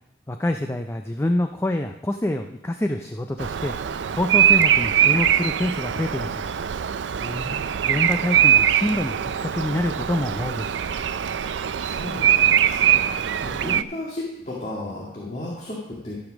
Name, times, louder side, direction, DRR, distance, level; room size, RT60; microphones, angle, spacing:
voice 1, 0.3-6.4 7.8-10.7, left 1 dB, 15° left, 6 dB, 0.4 m, -26 dB
Bird vocalization bird call bird song, 3.4-13.8, right 10 dB, 90° right, 0.4 m, -22 dB
voice 2, 7.1-7.6 11.4-16.1, left 1 dB, 40° left, -4 dB, 2.0 m, -34 dB
14.0 x 5.0 x 6.2 m, 0.84 s
head